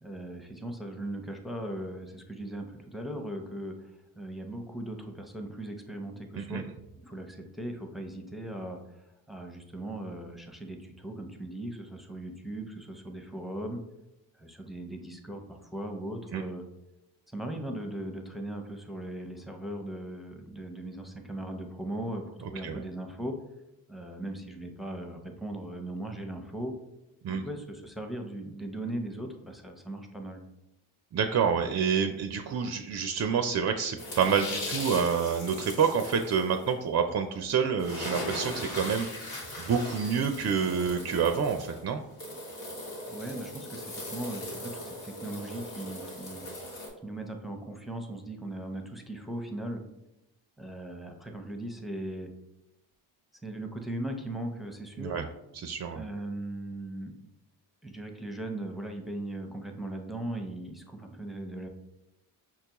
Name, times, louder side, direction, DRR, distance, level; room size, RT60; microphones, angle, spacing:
voice 1, 0.0-6.7 7.0-13.8 14.3-16.6 17.3-23.4 23.9-26.7 27.3-30.4 43.1-46.4 47.0-49.8 50.6-52.3 53.4-55.2 55.9-57.1 57.8-61.7, right 1 dB, ahead, 3 dB, 0.7 m, -38 dB
voice 2, 31.1-42.0 55.0-55.2 55.5-56.0, right 6 dB, 35° right, 6 dB, 0.4 m, -28 dB
sound 1, 34.0-36.7 37.5-37.6 37.8-46.9, left 1 dB, 90° left, 1.5 m, -39 dB
5.8 x 2.2 x 2.9 m, 0.90 s
supercardioid pair, 45°, 48 cm